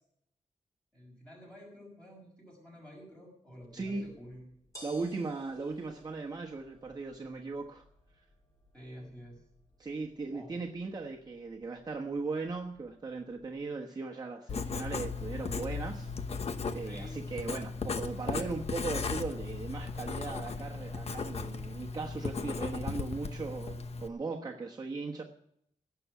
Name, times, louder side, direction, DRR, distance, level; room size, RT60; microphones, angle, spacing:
voice 1, 0.9-4.4 8.7-9.4 10.3-10.6 16.8-17.5, equal, 10° left, -1 dB, 6.1 m, -50 dB
sound 1, 3.6-13.7, equal, 25° left, 6.8 m, -59 dB
voice 2, 3.7-4.1 4.8-7.8 9.8-16.1 16.7-25.2, right 3 dB, 35° right, -1 dB, 1.2 m, -38 dB
Writing, 14.5-24.1, left 4 dB, 55° left, 1.0 m, -36 dB
17.5 x 6.9 x 8.2 m, 0.72 s
wide cardioid pair, 160°, 12 cm